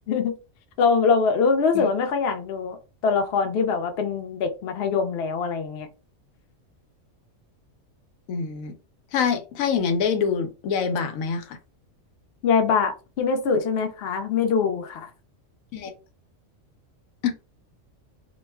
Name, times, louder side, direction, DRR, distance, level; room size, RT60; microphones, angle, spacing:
voice 1, 0.8-2.8 3.0-5.9 12.4-15.1, left 5 dB, 60° left, 0.7 m, -23 dB
voice 2, 8.3-8.7 9.1-11.6 15.7-15.9 17.2-17.3, left 6 dB, 90° left, 1.0 m, -25 dB
2.4 x 2.1 x 3.3 m
omnidirectional pair, 1.4 m